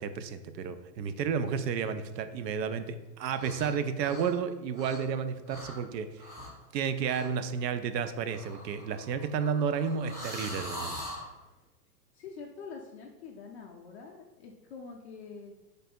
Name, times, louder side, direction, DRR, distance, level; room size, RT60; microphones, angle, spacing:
voice 1, 0.0-6.3 6.7-11.1, right 6 dB, 75° right, 10 dB, 0.6 m, -32 dB
sound 1, 3.3-3.7 4.0-5.2 5.5-5.8 6.2-6.6 7.0-7.3 8.3-11.3, equal, 5° right, 0.7 m, -42 dB
voice 2, 12.1-15.5, left 5 dB, 45° left, 0 dB, 0.4 m, -45 dB
3.2 x 2.6 x 4.3 m, 1.0 s
hypercardioid pair, 135°, 50 cm